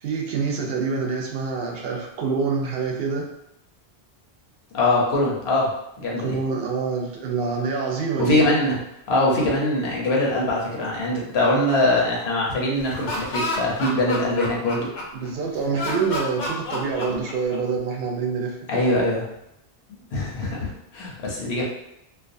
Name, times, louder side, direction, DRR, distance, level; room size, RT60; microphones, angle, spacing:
voice 1, 0.0-3.3 6.2-8.4 15.1-19.0, right 5 dB, 70° right, 0 dB, 0.7 m, -26 dB
voice 2, 4.7-6.4 8.2-8.7 9.1-14.9 18.7-19.2 20.1-21.6, left 1 dB, 80° left, -3 dB, 1.0 m, -22 dB
Laughter, 12.8-15.3 15.7-17.8, left 2 dB, 55° left, 0.6 m, -29 dB
2.4 x 2.2 x 2.5 m, 0.83 s
omnidirectional pair, 1.1 m